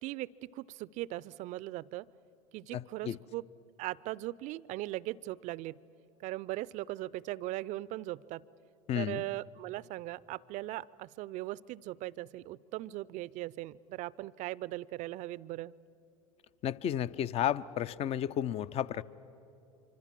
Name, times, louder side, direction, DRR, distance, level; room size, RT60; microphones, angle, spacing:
voice 1, 0.0-2.1 2.5-3.4 3.8-5.8 6.2-8.4 9.0-15.7, right 17 dB, 45° right, 21 dB, 0.5 m, -39 dB
voice 2, 2.7-3.2 8.9-9.2 16.6-19.0, left 10 dB, 35° left, 18 dB, 0.6 m, -32 dB
25.5 x 25.0 x 7.5 m, 2.8 s
hypercardioid pair, 85°, 17 cm